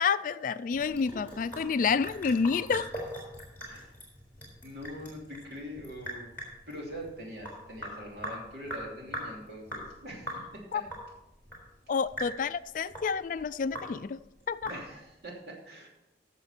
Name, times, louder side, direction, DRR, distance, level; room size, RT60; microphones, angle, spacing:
voice 1, 0.0-2.9 10.7-10.8 11.9-14.2 14.5-14.7, left 5 dB, 45° left, 0.3 m, -29 dB
Sink (filling or washing) / Drip, 0.7-15.2, equal, 10° left, 3.9 m, -42 dB
voice 2, 3.6-4.0 4.6-6.3 6.7-10.8 14.6-15.9, equal, 60° right, 3.0 m, -43 dB
14.5 x 6.8 x 4.4 m
head